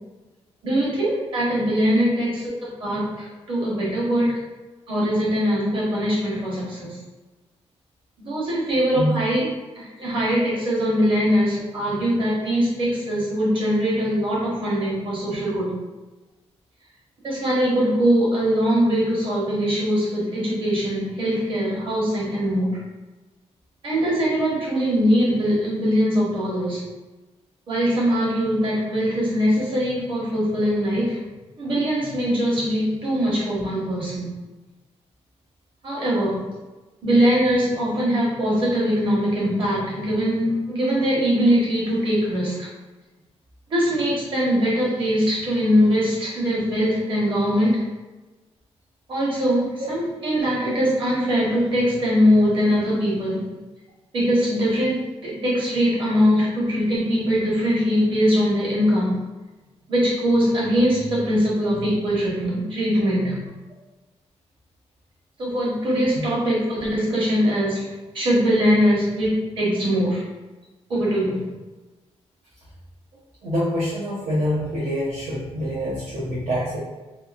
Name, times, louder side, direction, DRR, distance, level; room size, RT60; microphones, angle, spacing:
voice 1, 0.6-4.4 4.9-7.0 8.2-9.5 9.7-15.7 17.2-22.8 23.8-26.8 27.7-31.2 31.6-34.3 35.8-36.5 37.0-42.7 43.7-47.8 49.1-53.5 54.1-59.2 59.9-63.5 65.4-70.2 70.9-71.5, equal, 50° right, -7 dB, 1.2 m, -22 dB
voice 2, 73.4-76.8, equal, 75° right, -8 dB, 0.7 m, -25 dB
2.9 x 2.7 x 2.4 m, 1.2 s
wide cardioid pair, 155°, 11 cm